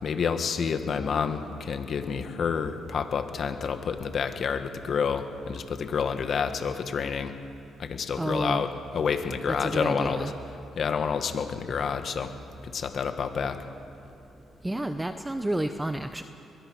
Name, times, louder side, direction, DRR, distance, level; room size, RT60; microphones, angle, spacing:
voice 1, 0.0-7.3 7.8-10.3 10.8-12.3 12.6-13.6, left 6 dB, 55° left, 7 dB, 1.8 m, -29 dB
voice 2, 8.2-8.6 9.5-10.3 14.6-16.2, right 1 dB, 10° right, 8 dB, 0.8 m, -30 dB
22.0 x 22.0 x 6.5 m, 2.9 s
cardioid pair, 90°, 0 cm